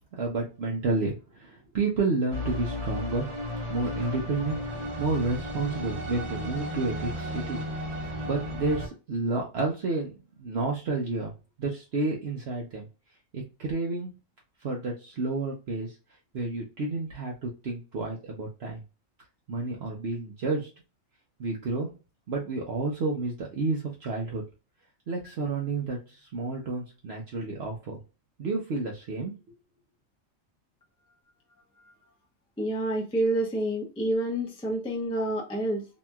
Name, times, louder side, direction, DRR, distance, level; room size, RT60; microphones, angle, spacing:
voice 1, 0.2-3.3 3.7-7.6 8.2-10.1 10.4-11.3 11.6-12.9 13.3-14.1 14.6-16.0 16.3-18.8 19.5-20.7 21.4-21.9 22.3-24.4 25.1-28.0 28.4-29.3, right 3 dB, 60° right, 0.9 m, -30 dB
sound 1, 2.3-8.9, equal, 25° right, 0.9 m, -34 dB
voice 2, 32.6-35.9, right 1 dB, 5° left, 0.5 m, -28 dB
2.9 x 2.7 x 2.2 m
omnidirectional pair, 1.3 m